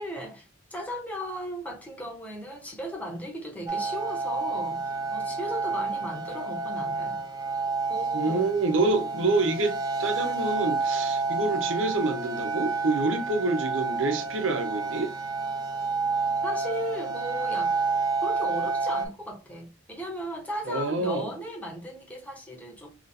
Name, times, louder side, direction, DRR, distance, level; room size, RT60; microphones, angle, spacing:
voice 1, 0.0-7.2 7.9-8.5 8.9-9.3 16.4-17.7 18.2-22.9, equal, 10° left, 0.9 m, -36 dB
sound 1, 3.7-19.1, right 4 dB, 20° right, 0.5 m, -29 dB
voice 2, 8.1-15.1 20.7-21.3, right 3 dB, 80° right, 0.7 m, -27 dB
2.9 x 2.6 x 4.1 m
head